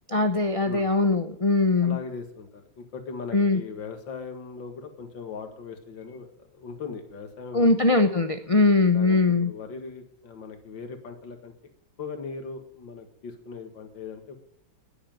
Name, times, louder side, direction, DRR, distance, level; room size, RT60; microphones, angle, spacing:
voice 1, 0.1-2.0 3.3-3.6 7.5-9.5, left 3 dB, 40° left, 7 dB, 0.4 m, -21 dB
voice 2, 1.8-2.5 2.8-8.0 8.9-11.5 12.0-14.3, left 5 dB, 75° left, 6 dB, 2.5 m, -39 dB
10.5 x 10.0 x 9.1 m, 0.69 s
omnidirectional pair, 2.1 m